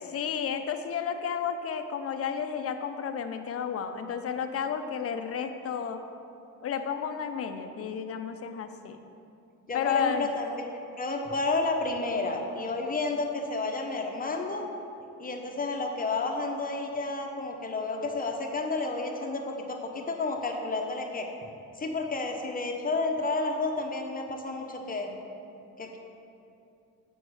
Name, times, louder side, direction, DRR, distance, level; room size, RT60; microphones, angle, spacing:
voice 1, 0.0-6.0 6.6-9.0 9.7-10.3, left 7 dB, 50° left, 7 dB, 0.6 m, -32 dB
voice 2, 9.7-10.7 11.0-14.6 15.2-21.3 21.8-25.1 25.8-26.0, left 3 dB, 30° left, 2 dB, 0.9 m, -31 dB
7.6 x 5.4 x 4.8 m, 2.7 s
cardioid pair, 90°, 30 cm